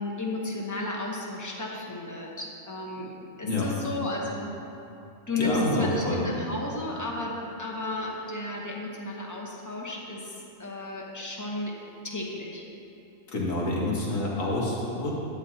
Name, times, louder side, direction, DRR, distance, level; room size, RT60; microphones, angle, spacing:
voice 1, 0.0-3.1 3.4-4.5 5.3-12.6, left 2 dB, 15° left, -2 dB, 0.9 m, -33 dB
voice 2, 5.4-6.2 13.3-15.1, left 2 dB, 70° left, -4 dB, 2.0 m, -27 dB
11.5 x 9.0 x 2.9 m, 2.8 s
omnidirectional pair, 1.4 m